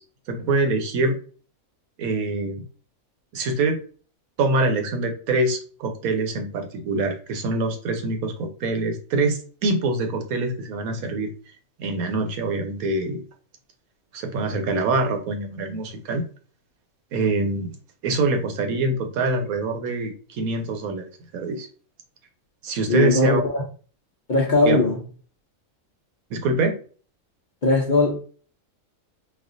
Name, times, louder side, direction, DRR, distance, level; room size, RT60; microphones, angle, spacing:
voice 1, 0.3-1.2 2.0-2.7 3.3-3.8 4.4-11.3 11.8-13.2 14.1-16.2 17.1-17.8 18.0-21.7 22.6-23.4 24.6-24.8 26.3-26.8, right 2 dB, 80° right, 1.2 m, -24 dB
voice 2, 22.9-23.6 24.3-25.0 27.6-28.2, left 3 dB, 45° left, 0.6 m, -19 dB
4.2 x 2.4 x 2.5 m
omnidirectional pair, 1.5 m